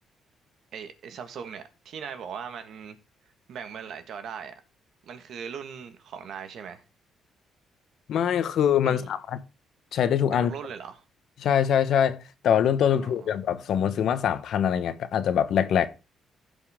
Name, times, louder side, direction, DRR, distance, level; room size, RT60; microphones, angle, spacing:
voice 1, 0.7-3.0 3.5-4.6 5.0-6.8 8.8-9.1 10.3-11.0 12.9-13.4, right 7 dB, 70° right, 1.6 m, -39 dB
voice 2, 8.1-9.4 9.9-10.5 11.4-15.9, left 9 dB, 70° left, 1.0 m, -24 dB
15.5 x 5.4 x 3.6 m
cardioid pair, 90°, 0 cm